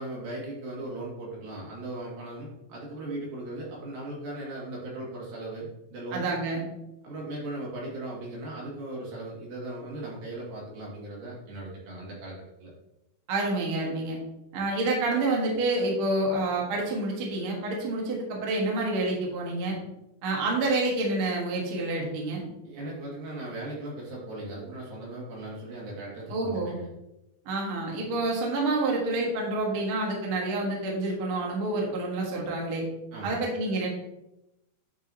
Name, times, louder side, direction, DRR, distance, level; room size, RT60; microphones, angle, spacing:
voice 1, 0.0-6.4 7.0-12.7 22.6-26.9 33.1-33.4, right 1 dB, 75° right, -4 dB, 3.8 m, -38 dB
voice 2, 6.1-6.7 13.3-14.2 14.5-19.7 20.2-22.4 26.3-26.8 27.4-32.8 33.2-33.9, right 2 dB, 55° right, -2 dB, 1.6 m, -28 dB
9.1 x 4.9 x 2.7 m, 0.90 s
omnidirectional pair, 4.2 m